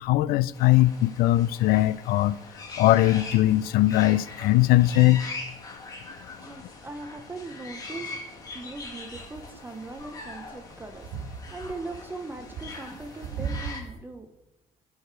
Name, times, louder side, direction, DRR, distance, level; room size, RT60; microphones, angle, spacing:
voice 1, 0.0-2.4 2.8-5.2, left 16 dB, 65° left, 0.4 m, -20 dB
Parrot and rain, 0.5-13.8, left 3 dB, 20° left, 1.4 m, -42 dB
voice 2, 6.4-11.1 11.5-14.3, right 2 dB, 10° right, 0.6 m, -40 dB
sound 1, 9.0-14.0, right 6 dB, 75° right, 1.8 m, -37 dB
13.5 x 4.9 x 4.6 m
cardioid pair, 170°, 16 cm